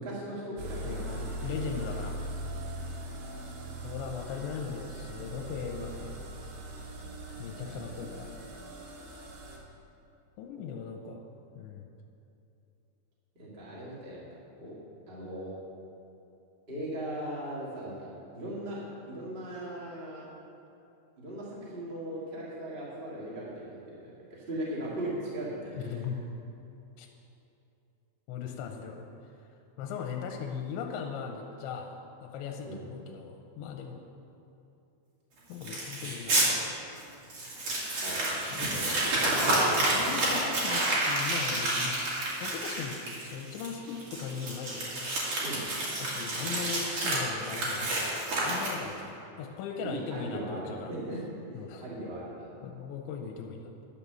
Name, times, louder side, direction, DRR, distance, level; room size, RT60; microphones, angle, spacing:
voice 1, 0.0-1.7 13.3-14.2 14.6-14.8 15.1-15.5 16.7-18.8 19.0-20.3 21.2-26.0 32.6-32.8 38.0-39.1 39.4-39.6 45.4-45.6 46.4-46.5 49.8-51.2 51.5-52.5, right 1 dB, 25° right, -7 dB, 1.1 m, -38 dB
sound 1, 0.6-9.6, right 1 dB, 75° right, 3.5 m, -40 dB
voice 2, 0.8-2.3 3.8-6.2 7.4-8.3 10.4-11.2 11.5-11.9 25.7-26.2 27.0-27.1 28.3-29.1 29.8-34.0 35.5-36.8 38.5-38.8 39.4-42.0 42.4-45.1 46.0-50.9 51.5-51.9 52.6-53.7, left 6 dB, 90° left, 2 dB, 3.0 m, -39 dB
Crumpling crinkling, 35.6-36.5 37.0-37.1 37.3-49.0, right 1 dB, 45° right, 2.5 m, -29 dB
10.5 x 6.2 x 6.9 m, 2.8 s
omnidirectional pair, 5.3 m